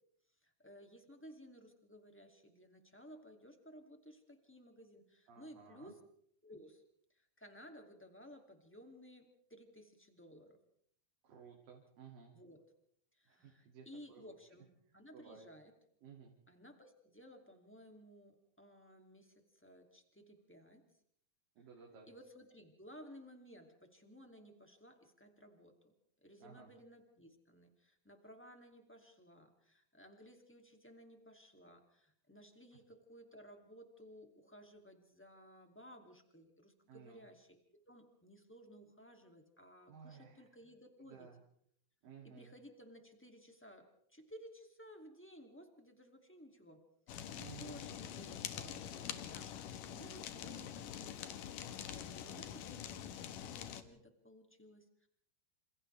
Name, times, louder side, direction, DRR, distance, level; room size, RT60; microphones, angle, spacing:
voice 1, 0.4-6.0 6.4-6.8 7.1-10.6 12.3-12.6 13.1-15.7 16.5-20.9 22.1-25.9 26.2-37.6 37.9-41.3 42.2-47.2 47.6-51.5 51.9-55.1, equal, 5° left, 3 dB, 1.5 m, -57 dB
voice 2, 5.3-5.9 11.2-12.4 13.3-14.3 15.1-15.5 16.0-16.4 21.6-22.1 26.4-26.7 36.9-37.2 39.9-40.5 41.1-41.4 42.0-42.5 47.3-47.8, right 6 dB, 65° right, -1 dB, 4.1 m, -56 dB
Fire, 47.1-53.8, left 9 dB, 70° left, 2.6 m, -45 dB
28.0 x 27.5 x 3.4 m, 0.67 s
omnidirectional pair, 4.3 m